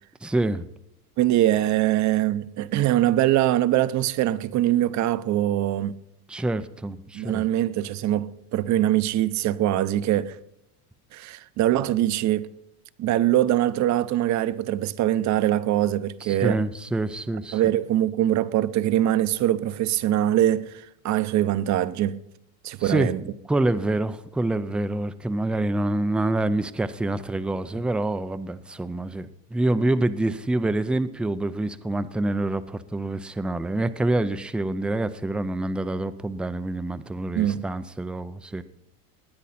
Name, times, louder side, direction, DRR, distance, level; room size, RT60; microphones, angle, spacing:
voice 1, 0.2-0.7 6.3-7.4 16.2-17.6 22.8-38.6, right 2 dB, ahead, 0.4 m, -26 dB
voice 2, 1.2-6.0 7.1-10.4 11.1-12.5 13.0-16.6 17.5-22.2 22.6-23.2 37.3-37.6, right 13 dB, 40° right, 0.7 m, -23 dB
19.0 x 9.9 x 4.2 m
supercardioid pair, 120°, 45 cm